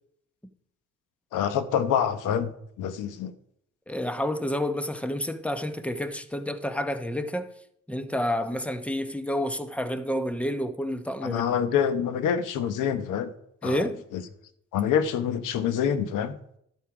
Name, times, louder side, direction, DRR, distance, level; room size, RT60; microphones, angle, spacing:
voice 1, 1.3-2.5 2.8-3.3 11.2-13.3 13.6-14.2 14.7-16.4, left 8 dB, 90° left, 1.0 m, -26 dB
voice 2, 3.9-7.5 7.9-11.4 13.6-14.0, equal, 5° left, 1.0 m, -29 dB
12.0 x 6.5 x 4.9 m
cardioid pair, 90°, 30 cm